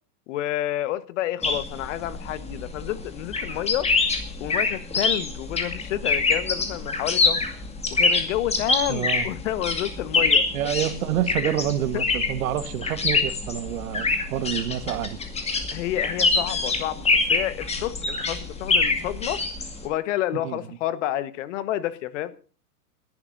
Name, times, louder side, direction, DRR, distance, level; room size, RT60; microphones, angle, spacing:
voice 1, 0.3-3.9 4.4-7.4 7.9-10.5 11.9-12.0 15.7-19.4 19.8-22.3, left 13 dB, 50° left, 1.4 m, -29 dB
sound 1, 1.4-19.9, left 3 dB, 15° left, 2.2 m, -25 dB
voice 2, 8.9-9.3 10.5-15.2 20.3-20.6, right 11 dB, 60° right, 1.6 m, -28 dB
29.5 x 11.0 x 2.7 m
hypercardioid pair, 120°, 47 cm